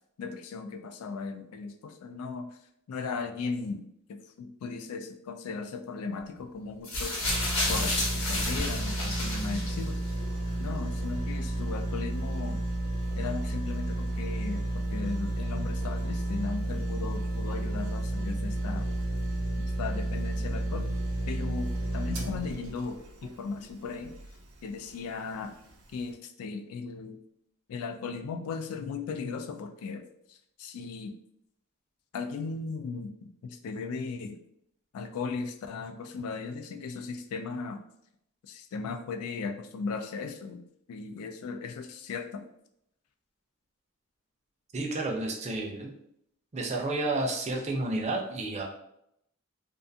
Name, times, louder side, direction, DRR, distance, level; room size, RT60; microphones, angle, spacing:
voice 1, 0.2-2.6 2.9-7.2 7.7-10.0 10.6-12.6 13.1-18.9 19.6-20.9 21.3-24.1 24.6-25.6 25.9-27.2 27.7-31.1 32.1-34.4 34.9-37.8 38.4-40.6 40.9-42.4, left 4 dB, 90° left, 6 dB, 0.3 m, -37 dB
sound 1, 6.8-10.1 11.0-11.1, left 1 dB, 65° left, 1.0 m, -31 dB
sound 2, 7.2-24.4 24.9-25.0, right 1 dB, 90° right, 0.5 m, -32 dB
voice 2, 44.7-45.9 46.5-48.7, right 2 dB, 30° right, 1 dB, 0.4 m, -31 dB
2.4 x 2.3 x 2.6 m, 0.76 s
head